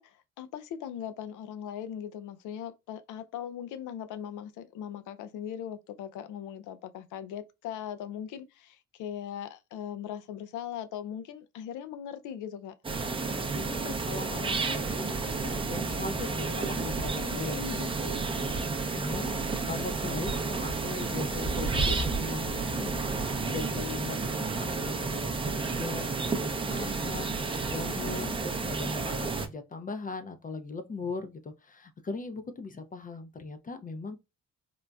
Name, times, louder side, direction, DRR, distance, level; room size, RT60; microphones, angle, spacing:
voice 1, 0.0-12.7 17.2-17.9 27.9-28.3, left 9 dB, 80° left, 0.5 m, -39 dB
sound 1, 12.8-29.5, right 3 dB, 20° right, 0.5 m, -31 dB
voice 2, 13.5-17.6 18.0-18.2 18.5-34.2, left 3 dB, 30° left, 0.5 m, -39 dB
3.9 x 2.1 x 2.3 m
cardioid pair, 90°, 30 cm